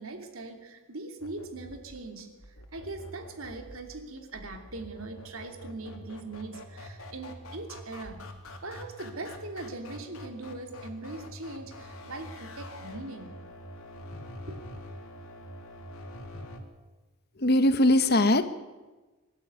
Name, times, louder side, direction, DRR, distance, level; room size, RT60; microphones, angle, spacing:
voice 1, 0.0-2.3 2.7-8.2 8.6-13.4 14.5-14.6, right 2 dB, 70° right, 5 dB, 2.9 m, -41 dB
sound 1, 1.2-16.6, left 1 dB, 75° left, 2.9 m, -45 dB
voice 2, 17.4-18.5, left 1 dB, 45° left, 11 dB, 1.2 m, -21 dB
24.0 x 12.5 x 9.5 m, 1.2 s
head